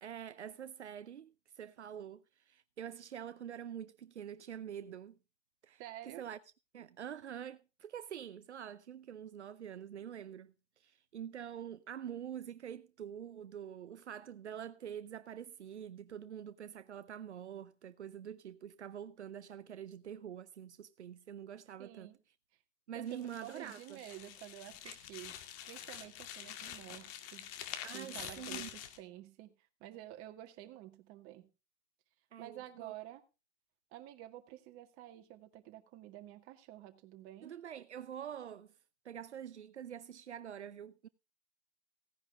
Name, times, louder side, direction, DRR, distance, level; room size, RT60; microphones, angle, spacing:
voice 1, 0.0-5.2 5.6-6.4 6.7-22.1 22.9-24.0 24.8-24.9 27.8-28.7 32.3-32.9 37.4-38.7 39.0-41.1, right 9 dB, 80° right, 0.7 m, -46 dB
voice 2, 5.8-6.2 21.8-22.2 22.9-25.3 25.6-27.5 27.9-31.5 32.4-33.2 33.9-37.5, right 14 dB, 40° right, 2.1 m, -50 dB
sound 1, 23.1-29.0, left 10 dB, 40° left, 2.1 m, -47 dB
16.5 x 10.5 x 3.6 m
figure-of-eight pair, 100°, 34 cm